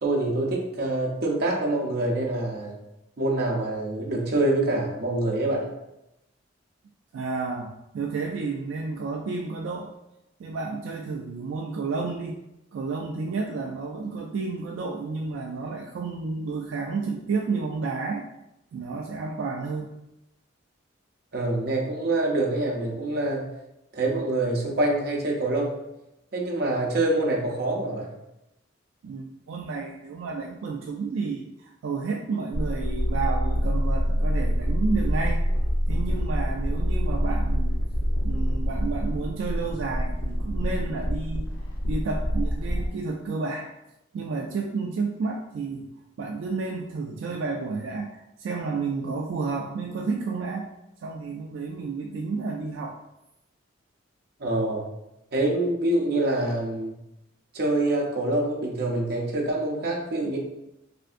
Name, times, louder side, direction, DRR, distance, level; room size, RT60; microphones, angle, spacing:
voice 1, 0.0-2.8 3.2-5.7 21.3-23.5 23.9-25.7 26.3-28.1 54.4-54.8 55.3-56.9 57.5-60.4, right 2 dB, 55° right, -2 dB, 0.7 m, -25 dB
voice 2, 7.1-9.9 10.4-12.4 12.7-18.2 18.7-19.9 29.0-35.4 35.9-37.8 38.2-41.5 41.9-43.7 44.1-45.9 46.2-50.7 51.0-53.0, right 4 dB, 80° right, 0 dB, 0.3 m, -31 dB
sound 1, 32.5-42.9, equal, 85° left, 0.7 m, -26 dB
3.4 x 2.6 x 2.4 m, 0.89 s
head